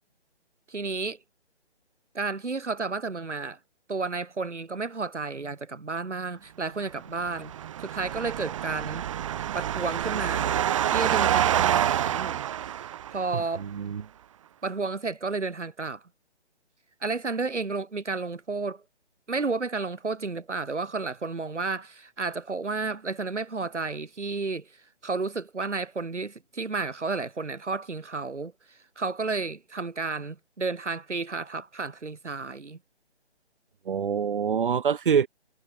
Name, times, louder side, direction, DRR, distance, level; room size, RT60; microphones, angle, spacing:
voice 1, 0.7-1.2 2.1-3.6 3.9-7.5 7.8-9.0 9.5-12.4 13.1-13.6 14.6-16.0 17.0-18.8 19.3-24.7 25.0-32.8, right 4 dB, 85° right, 3.7 m, -32 dB
sound 1, 7.1-13.4, right 11 dB, 25° right, 1.6 m, -27 dB
voice 2, 13.3-14.0 33.9-35.3, right 7 dB, 45° right, 4.2 m, -26 dB
figure-of-eight pair, 155°, 35 cm